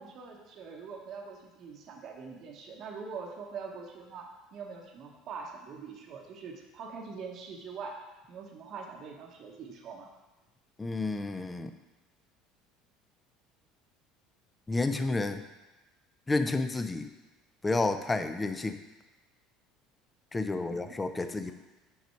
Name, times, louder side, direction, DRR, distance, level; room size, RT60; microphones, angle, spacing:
voice 1, 0.0-10.1 20.5-21.5, right 5 dB, 55° right, 1 dB, 0.9 m, -44 dB
voice 2, 10.8-11.7 14.7-15.4 16.3-17.1 17.6-18.8 20.3-21.5, left 3 dB, 20° left, 9 dB, 0.5 m, -30 dB
5.5 x 5.1 x 4.5 m, 1.1 s
supercardioid pair, 90°, 0 cm